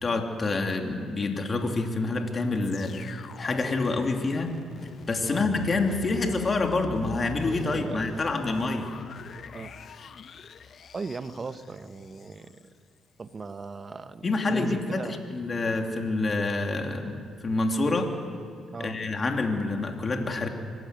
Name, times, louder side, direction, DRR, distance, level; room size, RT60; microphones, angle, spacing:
voice 1, 0.0-4.6 5.1-8.9 14.2-18.1 18.8-20.5, left 3 dB, 35° left, 3 dB, 2.8 m, -27 dB
sound 1, 2.6-12.7 13.3-13.4, left 6 dB, 55° left, 1.0 m, -43 dB
voice 2, 7.6-8.3 9.5-9.7 10.9-12.6 13.2-15.2 18.7-19.0, right 4 dB, 35° right, 11 dB, 1.2 m, -38 dB
25.0 x 16.0 x 9.6 m, 2.2 s
cardioid pair, 90°, 0 cm